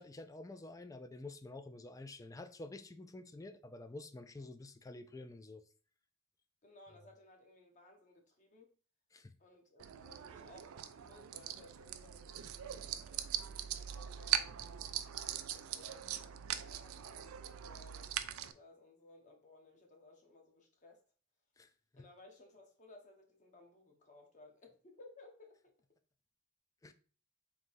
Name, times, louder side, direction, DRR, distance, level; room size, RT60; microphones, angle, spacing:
voice 1, 0.0-5.6 9.1-9.3 21.6-22.0 26.8-26.9, left 2 dB, 15° left, 0.3 m, -49 dB
voice 2, 6.6-8.7 9.4-21.0 21.9-25.6, left 2 dB, 35° left, 1.0 m, -60 dB
sound 1, 9.8-18.5, right 11 dB, 75° right, 0.4 m, -41 dB
3.7 x 2.7 x 4.4 m
head